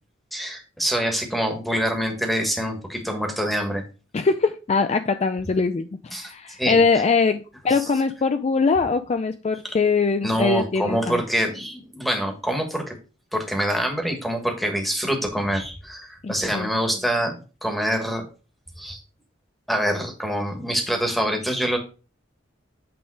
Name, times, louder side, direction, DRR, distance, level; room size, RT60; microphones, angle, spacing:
voice 1, 0.3-3.8 6.1-6.3 6.6-6.8 10.2-12.9 13.3-18.2 18.8-19.0 19.7-21.8, equal, ahead, 3 dB, 1.5 m, -25 dB
voice 2, 4.1-11.2 16.2-16.7, left 4 dB, 35° left, 9 dB, 0.4 m, -22 dB
8.7 x 3.6 x 4.7 m, 0.34 s
head